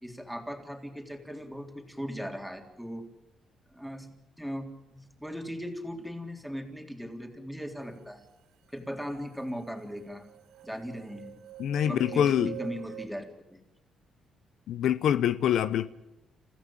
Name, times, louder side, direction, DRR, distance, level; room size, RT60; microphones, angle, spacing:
voice 1, 0.0-3.1 3.7-4.1 4.4-8.3 8.7-10.3 10.6-11.4 11.8-13.6, equal, ahead, 3.7 m, -38 dB
sound 1, 9.0-9.1 9.3-13.1, right 13 dB, 90° right, 1.0 m, -44 dB
voice 2, 11.6-12.5 14.7-15.9, left 10 dB, 75° left, 0.8 m, -25 dB
29.0 x 15.0 x 8.9 m
cardioid pair, 90°, 0 cm